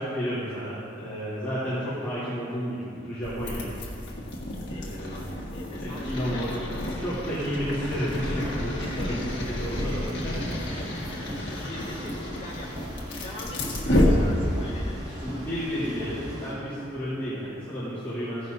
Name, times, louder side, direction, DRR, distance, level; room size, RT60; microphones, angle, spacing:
voice 1, 0.0-3.6 4.7-5.2 5.7-6.6 7.0-10.4 15.1-18.5, equal, 10° left, -14 dB, 2.9 m, -32 dB
sound 1, 3.2-14.8, left 1 dB, 60° left, 1.6 m, -30 dB
voice 2, 4.7-6.7 8.8-9.3 10.7-12.9 13.2-15.1, left 1 dB, 30° left, -5 dB, 1.9 m, -42 dB
sound 2, 7.5-16.5, equal, 25° right, 2.7 m, -38 dB
15.5 x 10.5 x 2.7 m, 2.5 s
head